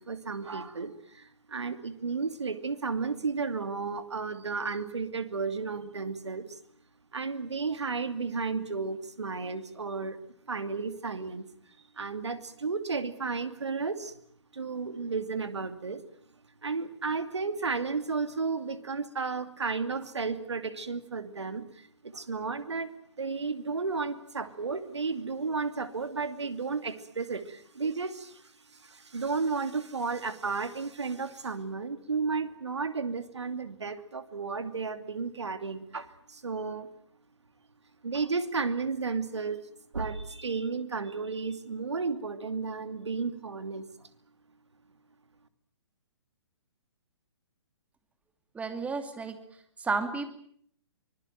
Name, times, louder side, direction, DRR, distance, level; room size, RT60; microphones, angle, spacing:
voice 1, 0.0-6.6 7.1-10.2 10.5-11.5 12.0-14.1 14.5-16.0 16.6-36.9 38.0-39.6 39.9-44.1, right 4 dB, 75° right, 11 dB, 2.6 m, -33 dB
voice 2, 48.5-49.4 49.8-50.3, right 4 dB, 10° right, 8 dB, 2.8 m, -31 dB
24.5 x 21.5 x 9.2 m, 0.65 s
figure-of-eight pair, 125°, 15 cm